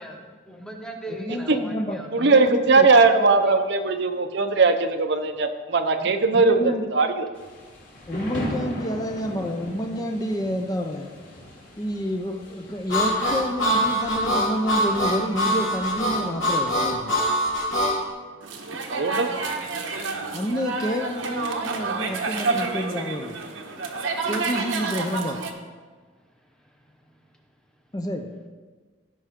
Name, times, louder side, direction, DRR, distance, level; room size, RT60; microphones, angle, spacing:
voice 1, 0.0-2.1 22.1-22.5, right 1 dB, 5° left, 2 dB, 0.9 m, -39 dB
voice 2, 1.1-2.9 6.0-6.9 8.1-11.1 11.8-17.2 20.3-23.4 24.3-25.5 27.9-28.3, equal, 20° left, 4 dB, 0.5 m, -29 dB
voice 3, 2.1-6.6 6.9-7.3 18.9-19.3, right 3 dB, 60° right, 7 dB, 0.7 m, -19 dB
Thunder / Rain, 7.3-16.3, equal, 60° left, 3.3 m, -39 dB
Harmonica, 12.9-18.0, equal, 80° left, 3.4 m, -23 dB
sound 1, 18.4-25.5, right 4 dB, 80° right, 1.1 m, -29 dB
16.0 x 5.6 x 3.6 m, 1.5 s
head